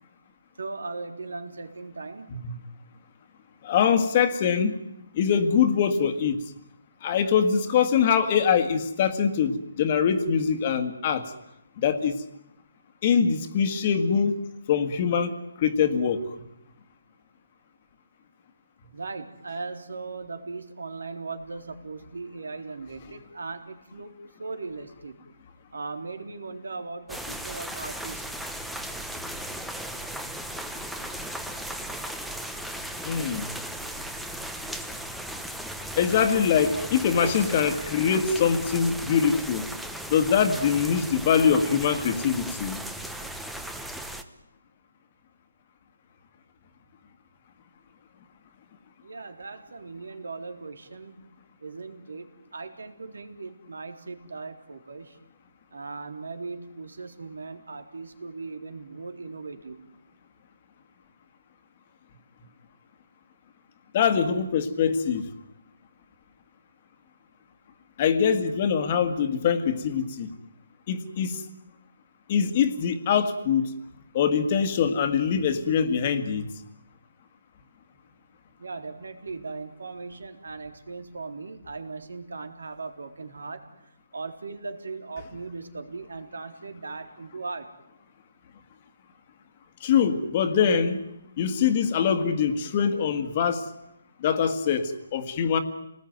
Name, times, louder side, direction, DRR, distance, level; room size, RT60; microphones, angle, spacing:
voice 1, 0.6-2.4 18.9-25.2 25.7-28.3 49.0-51.2 51.6-55.2 55.7-59.9 78.6-83.6 84.1-87.7, right 3 dB, 85° right, 7 dB, 3.8 m, -38 dB
voice 2, 3.6-4.8 5.1-6.4 7.0-11.3 11.8-12.2 13.0-14.3 14.7-16.2 33.0-33.5 36.0-39.7 40.1-42.8 63.9-65.2 68.0-70.3 70.9-71.5 72.3-73.7 74.1-76.5 89.8-91.1 91.4-93.7 94.2-95.6, left 7 dB, 25° left, 9 dB, 1.8 m, -23 dB
sound 1, 27.1-44.2, right 1 dB, ahead, 1.0 m, -36 dB
29.0 x 19.5 x 9.4 m, 0.84 s
hypercardioid pair, 170°, 0 cm